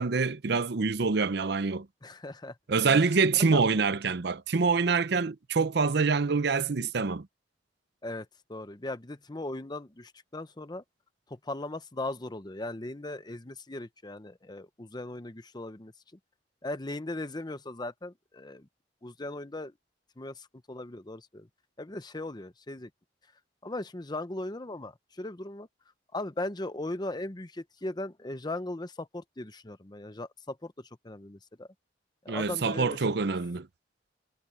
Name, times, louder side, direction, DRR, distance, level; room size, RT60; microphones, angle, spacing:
voice 1, 0.0-1.9 2.7-7.3 32.3-33.7, right 4 dB, 60° right, 0.7 m, -26 dB
voice 2, 2.0-3.7 8.0-10.8 11.3-15.9 16.6-18.7 19.0-19.7 20.2-21.5 21.8-22.9 23.6-25.7 26.1-31.7 32.2-33.1, left 2 dB, 25° left, 0.9 m, -38 dB
head